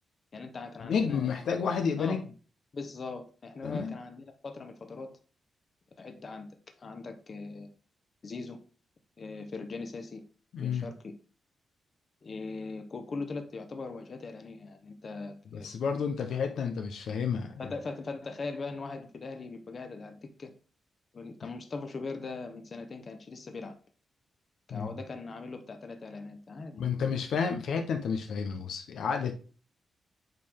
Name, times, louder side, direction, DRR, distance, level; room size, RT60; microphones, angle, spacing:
voice 1, 0.3-1.3 2.0-2.2 2.7-5.2 6.0-6.5 6.8-7.7 8.2-8.6 9.2-10.2 10.6-11.1 12.2-15.7 17.6-20.5 21.1-23.8 24.7-27.2, left 3 dB, 40° left, 6 dB, 1.0 m, -40 dB
voice 2, 0.8-2.2 3.6-4.0 10.5-10.9 15.5-17.6 24.7-24.9 26.8-29.3, left 6 dB, 80° left, 5 dB, 0.9 m, -30 dB
8.1 x 4.6 x 3.6 m, 0.38 s
cardioid pair, 125°, 0 cm